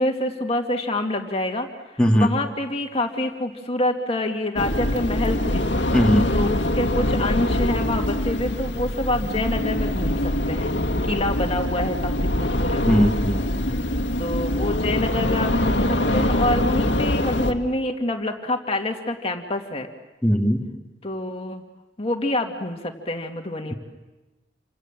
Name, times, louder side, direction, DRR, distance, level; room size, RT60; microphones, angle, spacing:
voice 1, 0.0-1.7 2.1-5.7 6.3-10.7 11.0-12.8 14.2-19.9 21.0-21.6 22.0-23.7, left 1 dB, 35° left, 3 dB, 2.3 m, -26 dB
sound 1, 4.6-17.5, left 1 dB, 85° left, 2.1 m, -24 dB
voice 2, 5.9-6.3 12.8-13.5 20.2-20.6, equal, 5° left, -1 dB, 2.2 m, -19 dB
28.5 x 27.0 x 7.5 m, 1.1 s
head